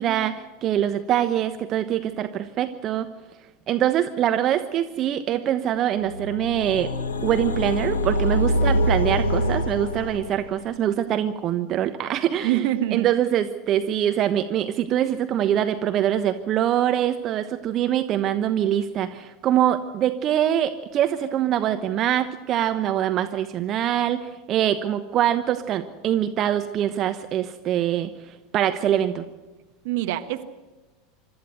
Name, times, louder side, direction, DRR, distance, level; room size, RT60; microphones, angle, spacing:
voice 1, 0.0-3.1 3.7-6.9 7.2-12.6 12.9-29.2, right 11 dB, 40° right, 9 dB, 1.1 m, -24 dB
sound 1, 6.1-10.7, equal, 75° left, 1.7 m, -25 dB
voice 2, 12.4-13.1 29.8-30.5, right 13 dB, 60° right, 8 dB, 1.4 m, -25 dB
26.0 x 13.5 x 7.9 m, 1.2 s
figure-of-eight pair, 80°, 0 cm